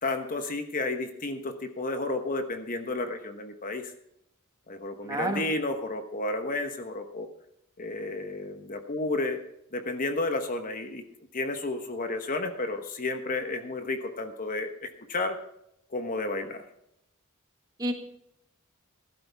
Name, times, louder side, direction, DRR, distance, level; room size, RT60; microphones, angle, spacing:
voice 1, 0.0-3.9 4.7-7.3 7.8-9.4 9.7-11.0 11.3-15.4 15.9-16.6, left 2 dB, 40° left, 6 dB, 1.2 m, -32 dB
voice 2, 5.0-5.5 17.8-17.9, right 1 dB, 20° right, 4 dB, 1.7 m, -29 dB
15.0 x 12.0 x 3.5 m, 0.76 s
head